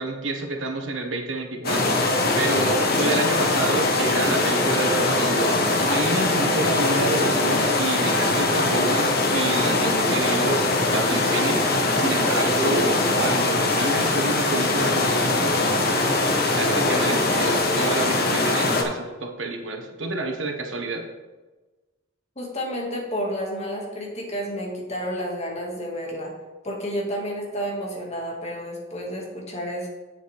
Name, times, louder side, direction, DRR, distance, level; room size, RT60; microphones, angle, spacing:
voice 1, 0.0-5.6 5.9-15.6 16.0-16.3 16.5-21.0, right 2 dB, 85° right, 3 dB, 1.4 m, -29 dB
sound 1, 1.6-18.8, left 2 dB, 55° left, 1.4 m, -22 dB
voice 2, 22.4-26.3 26.6-29.9, equal, 35° left, -2 dB, 2.1 m, -30 dB
9.3 x 7.4 x 3.5 m, 1.2 s
head